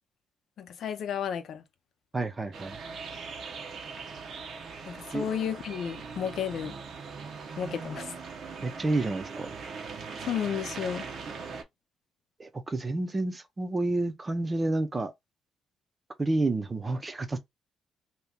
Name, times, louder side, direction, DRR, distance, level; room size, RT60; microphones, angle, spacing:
voice 1, 0.6-1.6 4.9-6.8 7.6-8.1 10.2-11.0, left 8 dB, 70° left, 0.6 m, -32 dB
voice 2, 2.1-2.8 5.1-5.2 8.6-9.5 12.4-15.1 16.2-17.4, right 2 dB, 25° right, 0.6 m, -29 dB
sound 1, 2.5-11.6, right 5 dB, 60° right, 0.8 m, -40 dB
2.8 x 2.4 x 3.5 m
cardioid pair, 90°, 0 cm